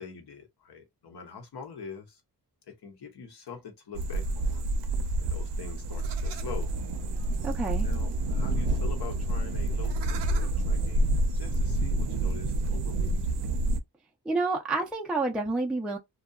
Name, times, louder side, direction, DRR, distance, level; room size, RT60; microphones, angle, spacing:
voice 1, 0.0-2.2 2.7-4.7 5.2-6.7 7.8-13.4, left 6 dB, 75° left, 0.9 m, -44 dB
sound 1, 3.9-13.8, right 1 dB, 85° right, 0.5 m, -28 dB
voice 2, 7.4-7.9 14.3-16.0, right 3 dB, 5° right, 0.3 m, -29 dB
2.7 x 2.2 x 2.2 m
wide cardioid pair, 110°, 40 cm